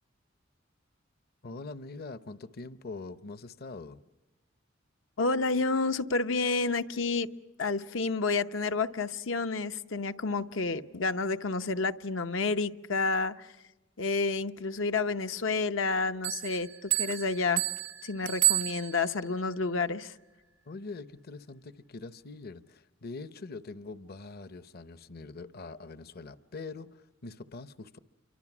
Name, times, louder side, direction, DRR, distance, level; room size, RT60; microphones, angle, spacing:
voice 1, 1.4-4.0 20.7-28.0, left 3 dB, 55° left, 0.7 m, -43 dB
voice 2, 5.2-7.3 7.6-13.5 14.0-17.6 18.0-20.1, left 4 dB, 85° left, 0.8 m, -30 dB
Bell, 16.2-19.3, right 18 dB, 75° right, 0.7 m, -30 dB
28.5 x 24.5 x 6.0 m
head